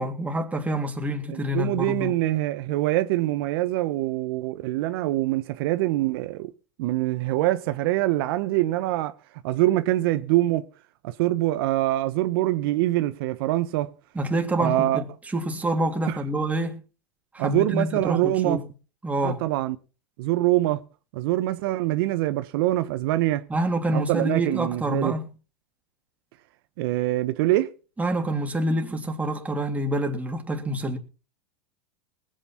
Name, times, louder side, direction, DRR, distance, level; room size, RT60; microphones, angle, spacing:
voice 1, 0.0-2.1 14.1-16.8 17.3-18.6 19.0-19.4 23.5-25.3 28.0-31.0, right 1 dB, 10° right, 3.1 m, -27 dB
voice 2, 1.3-6.5 6.8-9.1 9.4-10.7 11.0-13.9 14.6-15.0 16.1-16.2 17.4-18.6 19.2-19.8 20.2-20.8 21.1-23.5 23.9-25.2 26.8-27.7, right 16 dB, 65° right, 1.1 m, -24 dB
20.5 x 9.0 x 5.8 m
hypercardioid pair, 105°, 13 cm